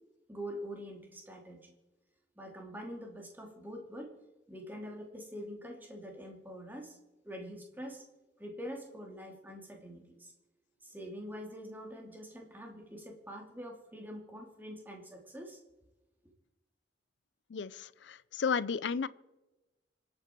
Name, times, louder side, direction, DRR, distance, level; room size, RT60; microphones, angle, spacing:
voice 1, 0.3-1.7 2.4-4.1 4.5-7.0 7.2-8.0 8.4-10.3 10.8-15.6, equal, 10° right, 1 dB, 2.8 m, -45 dB
voice 2, 17.5-19.1, left 6 dB, 85° left, 18 dB, 0.5 m, -33 dB
26.5 x 8.9 x 4.6 m, 1.1 s
head